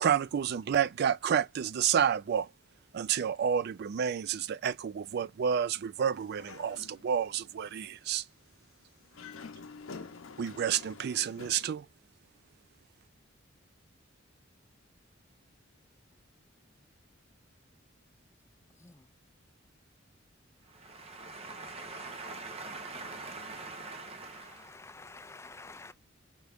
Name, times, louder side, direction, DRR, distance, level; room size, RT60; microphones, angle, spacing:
voice 1, 0.0-2.5 2.9-8.2 10.4-11.9, right 8 dB, 55° right, 0.3 m, -30 dB
Dog, 6.1-7.2 7.6-7.8 9.0-11.7, left 4 dB, 85° left, 0.7 m, -48 dB
voice 2, 18.8-19.1 24.1-25.9, left 3 dB, 15° left, 0.4 m, -50 dB
voice 3, 20.6-24.8, right 3 dB, 30° right, 0.7 m, -43 dB
5.6 x 2.4 x 3.3 m
head